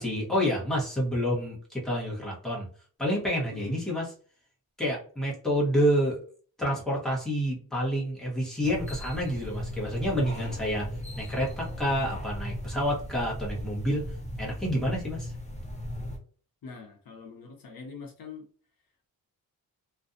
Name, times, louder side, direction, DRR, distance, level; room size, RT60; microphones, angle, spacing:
voice 1, 0.0-2.7 3.0-4.0 4.8-6.2 6.6-10.9 11.2-14.1 14.4-15.3, equal, ahead, -5 dB, 1.0 m, -28 dB
voice 2, 3.5-3.9 16.6-18.5, left 4 dB, 65° left, 3 dB, 0.7 m, -43 dB
sound 1, 8.6-16.2, equal, 20° left, 0.6 m, -37 dB
2.5 x 2.2 x 2.5 m, 0.43 s
cardioid pair, 105°, 37 cm